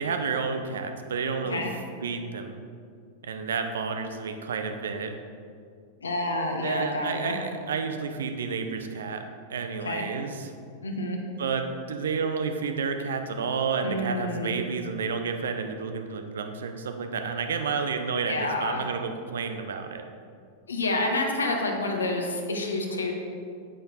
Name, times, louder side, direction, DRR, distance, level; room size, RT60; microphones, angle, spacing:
voice 1, 0.0-1.7 2.0-2.6 3.2-5.2 6.6-10.5 11.4-20.0, right 5 dB, 65° right, 7 dB, 0.7 m, -30 dB
voice 2, 6.0-7.3 9.8-10.0 10.8-11.2 13.8-14.5 18.3-18.8 20.7-23.1, left 2 dB, 75° left, 2 dB, 1.2 m, -28 dB
8.7 x 7.8 x 4.2 m, 2.3 s
figure-of-eight pair, 90°, 0 cm